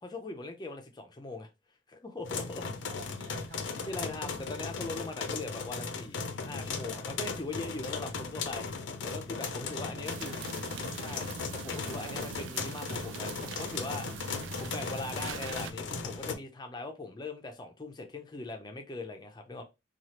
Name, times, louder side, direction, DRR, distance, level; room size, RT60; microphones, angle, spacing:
voice 1, 0.0-1.5 1.9-2.7 3.8-10.3 11.0-14.1 14.6-19.6, left 2 dB, 25° left, 0.5 m, -41 dB
sound 1, 2.2-16.4, left 4 dB, 80° left, 0.5 m, -37 dB
voice 2, 2.4-4.0 9.4-10.9 12.0-12.3, right 2 dB, 65° right, 0.8 m, -52 dB
sound 2, 10.0-15.7, right 8 dB, 90° right, 0.3 m, -43 dB
3.0 x 2.4 x 2.9 m
head